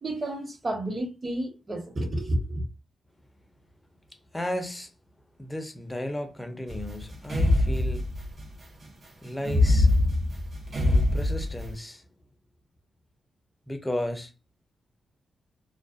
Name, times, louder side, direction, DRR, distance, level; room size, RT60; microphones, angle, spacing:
voice 1, 0.0-2.6, right 1 dB, 40° right, 1.2 m, -30 dB
voice 2, 4.3-4.9 5.4-8.1 9.2-9.9 10.7-12.0 13.7-14.3, left 1 dB, 10° left, 0.7 m, -34 dB
sound 1, 6.7-8.4 9.4-11.7, left 2 dB, 55° right, 0.8 m, -23 dB
2.4 x 2.2 x 2.5 m
cardioid pair, 60°, 0 cm